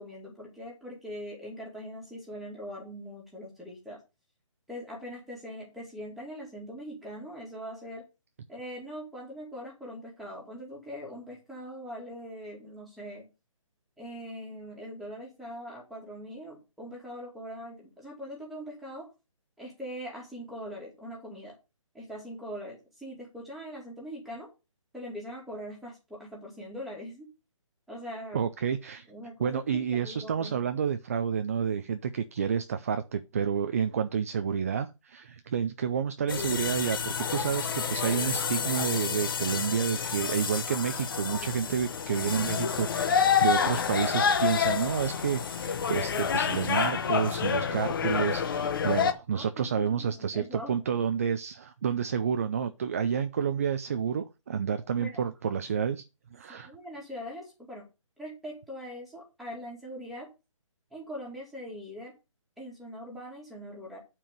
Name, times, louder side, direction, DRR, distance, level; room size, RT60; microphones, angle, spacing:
voice 1, 0.0-4.0 4.7-8.0 8.5-13.3 14.0-19.1 19.6-21.5 21.9-24.5 24.9-27.3 27.9-28.4 29.1-30.6 49.3-50.8 55.0-55.2 56.5-57.9 58.2-60.3 60.9-62.1 62.6-64.0, equal, ahead, 2.2 m, -42 dB
voice 2, 28.3-29.1 29.4-56.0 56.3-56.7, right 7 dB, 25° right, 0.4 m, -30 dB
sound 1, 36.3-49.1, left 7 dB, 40° left, 1.0 m, -28 dB
9.1 x 4.6 x 6.5 m
hypercardioid pair, 165°, 17 cm